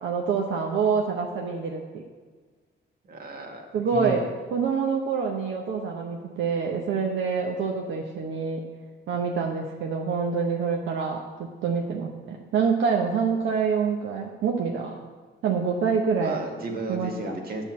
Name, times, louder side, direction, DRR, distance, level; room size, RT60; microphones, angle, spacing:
voice 1, 0.0-2.0 3.7-8.6 9.1-15.0 15.4-16.4 16.9-17.4, right 5 dB, 75° right, 0 dB, 0.8 m, -26 dB
voice 2, 3.1-3.6 3.9-4.2 16.2-17.6, right 2 dB, 50° right, 2 dB, 1.5 m, -34 dB
8.8 x 4.5 x 7.3 m, 1.5 s
cardioid pair, 90°, 20 cm